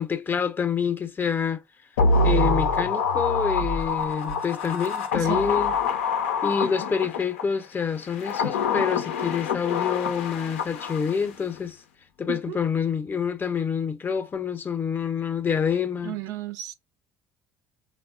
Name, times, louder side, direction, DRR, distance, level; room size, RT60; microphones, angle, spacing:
voice 1, 0.0-1.6 2.2-5.7 6.4-11.8 12.2-16.2, left 6 dB, 30° left, 0.6 m, -27 dB
sound 1, 2.0-7.4 8.1-11.3 11.6-11.7, left 4 dB, 85° left, 0.4 m, -25 dB
voice 2, 12.3-12.6 16.0-16.7, right 13 dB, 65° right, 0.4 m, -33 dB
3.5 x 2.1 x 2.3 m
hypercardioid pair, 65°, 7 cm